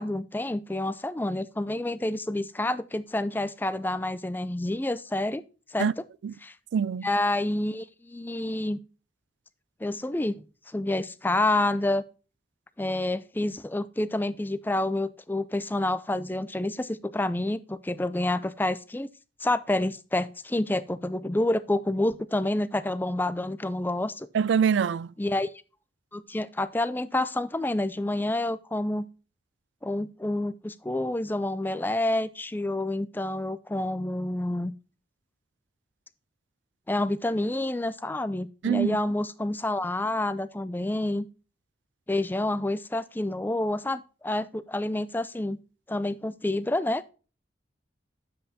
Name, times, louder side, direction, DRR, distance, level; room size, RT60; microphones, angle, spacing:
voice 1, 0.0-5.4 5.7-5.9 6.4-6.5 7.0-8.8 9.8-10.4 10.7-12.0 12.8-19.1 19.4-24.3 25.2-25.5 26.1-29.1 29.8-34.7 36.9-41.3 42.1-45.6 45.9-47.0, left 1 dB, 10° left, 0.4 m, -28 dB
voice 2, 6.7-7.1 24.3-25.1 38.6-39.0, right 7 dB, 80° right, 0.3 m, -24 dB
9.9 x 7.7 x 2.7 m
head